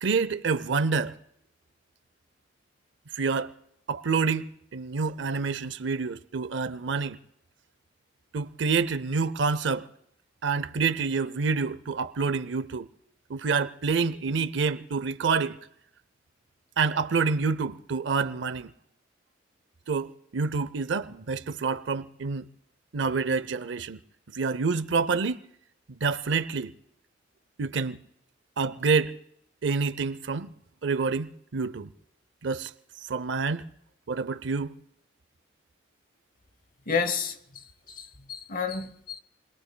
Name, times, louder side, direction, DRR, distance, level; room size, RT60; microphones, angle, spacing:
voice 1, 0.0-1.1 3.1-3.5 3.9-7.2 8.3-9.9 10.4-12.9 13.3-15.6 16.8-18.7 19.9-22.5 22.9-24.0 24.3-25.4 25.9-26.7 27.6-28.0 28.6-29.2 29.6-30.5 30.8-31.9 32.4-32.7 33.0-33.7 34.1-34.8, right 4 dB, 70° right, 0.6 m, -27 dB
voice 2, 36.9-39.2, left 5 dB, 45° left, 1.0 m, -31 dB
29.5 x 21.5 x 2.2 m
head